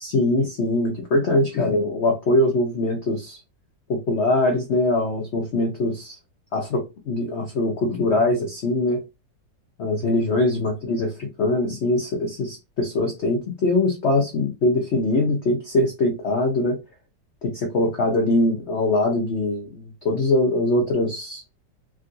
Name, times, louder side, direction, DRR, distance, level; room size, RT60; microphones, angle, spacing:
voice 1, 0.0-3.4 3.9-6.2 6.5-9.0 9.8-16.8 17.4-21.4, left 2 dB, 70° left, 0.6 m, -22 dB
3.5 x 2.3 x 2.5 m
omnidirectional pair, 2.0 m